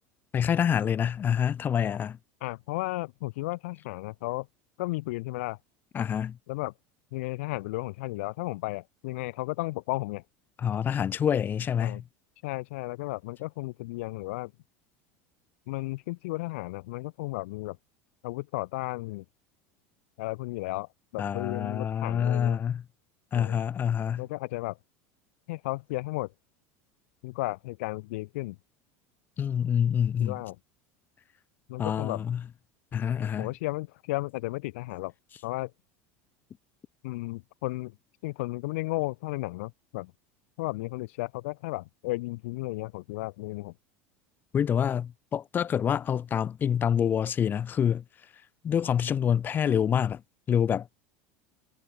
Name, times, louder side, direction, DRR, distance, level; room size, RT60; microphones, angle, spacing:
voice 1, 0.3-2.2 5.9-6.4 10.6-12.0 21.2-22.8 23.3-24.2 29.4-30.4 31.8-32.4 32.9-33.5 44.5-48.0 48.6-50.2 50.5-50.9, left 8 dB, 25° left, 2.6 m, -26 dB
voice 2, 2.4-4.5 4.8-5.6 6.5-6.7 7.1-10.2 11.8-12.0 12.4-14.5 15.7-17.8 18.2-19.2 20.2-22.6 23.3-23.6 24.2-24.8 25.5-26.3 27.2-28.6 30.2-30.6 31.7-32.2 33.4-35.1 35.4-35.7 37.0-38.0 38.2-40.1 40.6-43.7, left 21 dB, 75° left, 3.8 m, -34 dB
supercardioid pair, 140°, 7 cm